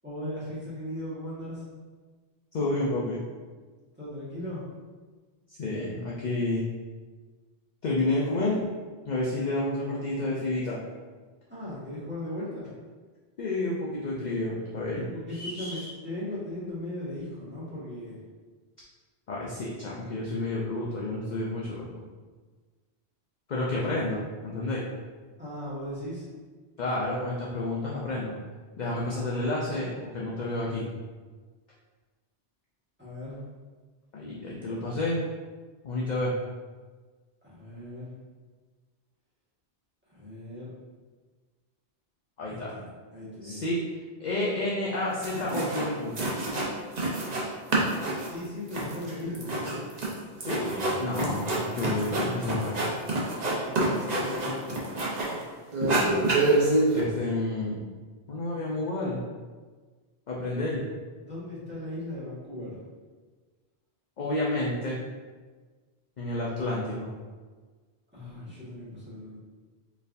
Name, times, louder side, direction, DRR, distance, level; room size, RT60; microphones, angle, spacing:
voice 1, 0.0-1.6 3.9-4.6 11.5-12.7 14.8-18.2 25.4-26.3 33.0-33.4 37.4-38.1 40.1-40.7 42.5-42.8 43.1-43.6 48.2-49.8 53.6-54.9 61.2-62.8 68.1-69.4, left 1 dB, 10° right, -11 dB, 1.5 m, -38 dB
voice 2, 2.5-3.2 5.5-6.6 7.8-8.6 9.1-10.8 13.4-15.8 19.3-22.0 23.5-24.8 26.8-28.4 28.8-30.9 34.1-35.2 35.8-36.3 42.4-42.8 43.4-43.8 44.2-46.1 50.4-52.8 55.8-56.1 56.9-57.8 58.3-59.2 60.3-60.9 64.2-65.0 66.2-67.1, left 2 dB, 50° left, -4 dB, 0.6 m, -30 dB
sound 1, 44.9-45.0 45.2-45.9 46.1-47.4 47.7-55.4 55.7-57.0, right 2 dB, 45° right, 0.8 m, -27 dB
4.4 x 3.4 x 2.5 m, 1.4 s
omnidirectional pair, 1.1 m